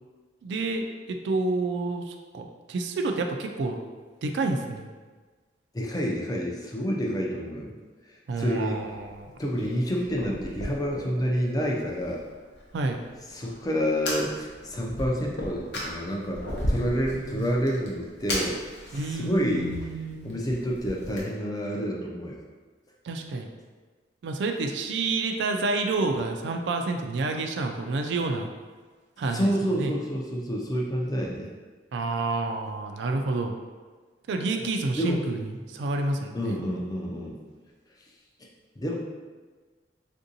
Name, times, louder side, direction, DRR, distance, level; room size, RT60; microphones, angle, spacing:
voice 1, 0.4-3.8 4.2-4.9 8.3-9.4 12.7-13.0 17.4-17.6 18.9-20.4 23.0-23.5 24.2-28.5 29.2-29.9 31.9-33.5 34.3-36.6, right 3 dB, 70° right, 4 dB, 0.3 m, -29 dB
voice 2, 5.7-7.7 8.4-8.8 9.4-12.2 13.3-18.6 19.1-19.8 20.2-22.4 29.3-31.5 35.0-35.2 36.3-37.4 38.8-39.0, equal, 20° left, -2 dB, 0.4 m, -28 dB
Fire, 8.3-21.2, left 1 dB, 70° left, 0.7 m, -37 dB
3.5 x 2.6 x 2.7 m, 1.4 s
head